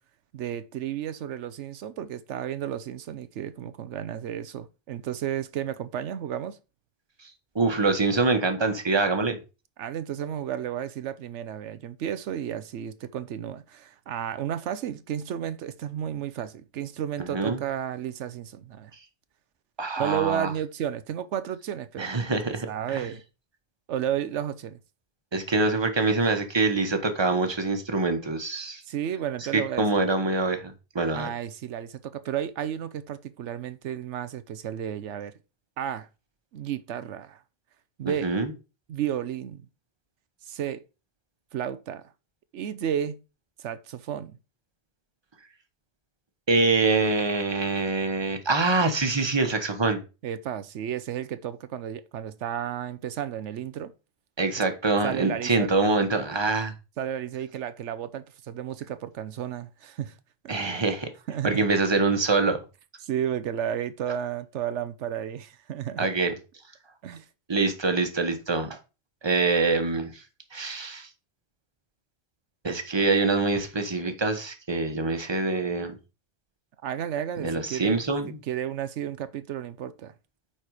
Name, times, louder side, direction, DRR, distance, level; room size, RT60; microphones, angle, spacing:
voice 1, 0.3-6.6 9.8-18.9 20.0-22.2 22.7-23.2 23.9-24.8 28.9-30.0 31.1-35.3 35.8-36.1 36.5-37.4 38.0-38.3 38.9-39.6 40.4-40.8 41.5-42.0 42.5-43.2 43.6-44.4 50.2-53.9 55.0-55.7 57.0-60.1 60.4-60.5 61.3-61.7 63.0-66.1 67.0-67.3 76.8-78.0 78.4-80.1, right 10 dB, 90° right, 1.0 m, -32 dB
voice 2, 7.5-9.4 17.3-17.6 19.8-20.5 22.0-22.7 22.9-23.1 25.3-28.8 29.5-31.3 38.0-38.5 46.5-50.0 54.4-56.7 60.5-61.1 61.4-62.6 66.0-66.3 67.5-68.8 69.2-70.2 70.5-71.1 72.6-76.0 77.4-78.4, right 3 dB, 25° right, 1.2 m, -25 dB
9.1 x 4.4 x 4.8 m
omnidirectional pair, 1.2 m